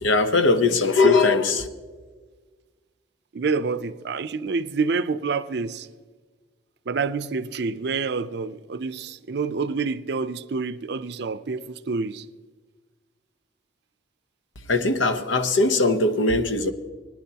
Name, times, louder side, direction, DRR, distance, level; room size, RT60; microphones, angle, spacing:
voice 1, 0.0-1.7 14.7-16.7, left 3 dB, 90° left, 0.9 m, -20 dB
voice 2, 3.3-5.9 6.9-12.3, right 4 dB, 60° right, 0.5 m, -27 dB
21.5 x 10.0 x 2.9 m
head